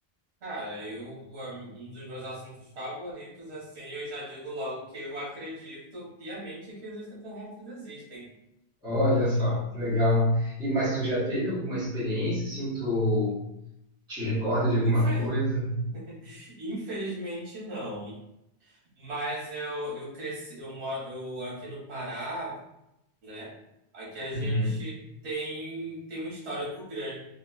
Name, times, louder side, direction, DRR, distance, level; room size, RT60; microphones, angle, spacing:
voice 1, 0.4-8.3 9.2-9.6 14.8-15.3 15.9-18.2 18.6-22.6 23.2-23.6 23.9-27.2, right 1 dB, 80° right, -7 dB, 1.1 m, -37 dB
voice 2, 8.8-13.4 14.1-15.9 24.3-24.8, equal, 5° right, -12 dB, 1.0 m, -26 dB
2.8 x 2.3 x 2.2 m, 0.84 s
omnidirectional pair, 1.1 m